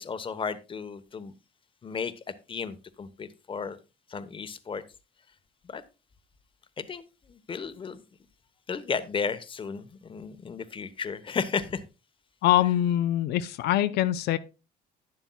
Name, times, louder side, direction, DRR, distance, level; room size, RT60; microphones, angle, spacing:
voice 1, 0.0-1.3 1.8-2.1 2.5-3.8 4.1-4.8 5.7-5.8 6.8-8.0 8.7-11.8, left 5 dB, 30° left, 1.1 m, -34 dB
voice 2, 12.4-14.4, left 13 dB, 80° left, 0.6 m, -23 dB
11.5 x 9.8 x 2.3 m
cardioid pair, 110°, 17 cm